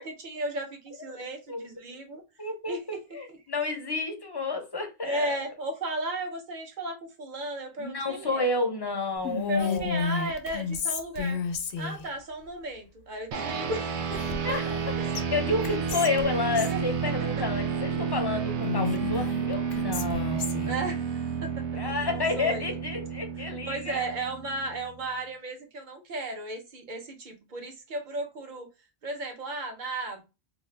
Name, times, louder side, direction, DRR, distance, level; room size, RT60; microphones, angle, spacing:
voice 1, 0.0-2.2 2.7-3.0 5.0-8.5 9.5-11.4 11.8-14.2 14.5-15.1 16.7-16.8 20.6-22.8 23.6-28.7 29.0-30.2, right 2 dB, 45° right, 0.9 m, -35 dB
voice 2, 2.4-5.4 7.8-10.0 14.4-14.7 15.1-20.7 21.8-24.1, left 3 dB, 25° left, 0.5 m, -30 dB
Whispering, 9.2-12.1 14.1-14.9 15.1-15.2 15.6-16.8 18.6-20.7, left 5 dB, 70° left, 0.8 m, -32 dB
sound 1, 13.3-25.0, right 6 dB, 80° right, 0.9 m, -31 dB
2.6 x 2.4 x 3.2 m
omnidirectional pair, 1.2 m